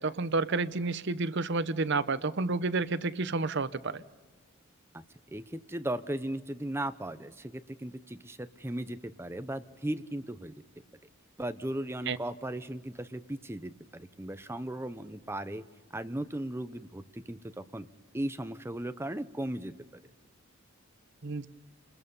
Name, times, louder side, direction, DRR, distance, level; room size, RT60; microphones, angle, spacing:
voice 1, 0.0-4.0 12.1-12.2 21.2-21.5, right 3 dB, 55° right, 14 dB, 0.8 m, -30 dB
voice 2, 5.3-10.5 11.4-15.6 15.9-17.9 18.1-19.7, right 1 dB, 10° right, 11 dB, 0.8 m, -37 dB
28.0 x 21.0 x 5.5 m, 1.3 s
head